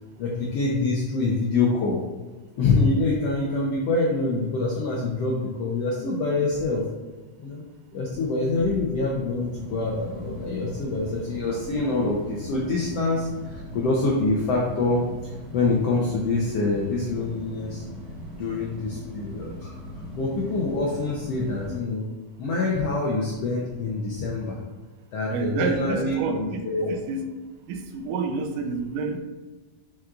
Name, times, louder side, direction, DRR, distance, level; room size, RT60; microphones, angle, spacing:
voice 1, 0.2-2.0 2.6-6.8 7.4-7.6 7.9-17.8 18.4-19.8 20.1-22.0 22.4-24.6 25.1-26.9, left 3 dB, 90° left, -3 dB, 1.3 m, -25 dB
sound 1, 8.2-21.8, left 1 dB, 25° right, 1.8 m, -39 dB
voice 2, 25.3-27.3 27.7-29.2, right 4 dB, 80° right, 6 dB, 2.1 m, -29 dB
7.5 x 5.9 x 2.5 m, 1.3 s
omnidirectional pair, 3.9 m